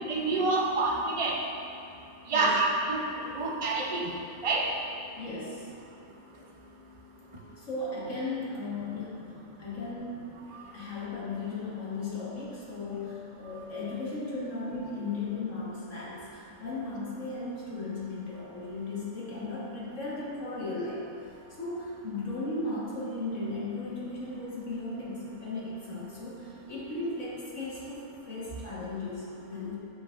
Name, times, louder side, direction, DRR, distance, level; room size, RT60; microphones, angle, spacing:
voice 1, 0.0-1.4 2.3-3.0 3.3-4.1 4.4-4.7, right 3 dB, 50° right, -1 dB, 0.4 m, -27 dB
voice 2, 5.2-5.7 7.6-9.3 9.6-10.2 10.7-21.0 21.6-28.0 28.3-29.8, left 3 dB, 55° left, -7 dB, 1.8 m, -36 dB
7.3 x 7.0 x 2.5 m, 2.6 s
omnidirectional pair, 1.6 m